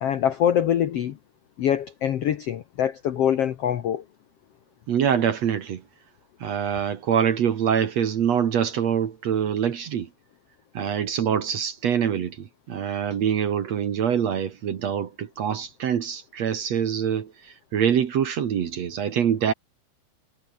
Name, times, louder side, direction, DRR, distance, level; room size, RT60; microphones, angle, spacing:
voice 1, 0.0-1.2 1.6-4.0, left 9 dB, 80° left, 1.3 m, -24 dB
voice 2, 4.9-5.8 6.4-10.1 10.7-19.5, right 8 dB, 55° right, 2.2 m, -25 dB
omnidirectional pair, 4.5 m